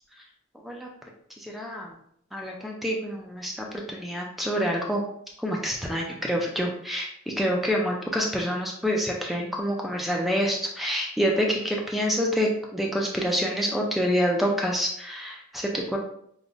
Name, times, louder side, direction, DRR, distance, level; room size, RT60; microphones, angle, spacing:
voice 1, 1.4-2.0 2.3-5.0 5.4-16.0, equal, ahead, -1 dB, 0.3 m, -27 dB
5.1 x 2.0 x 2.4 m, 0.70 s
head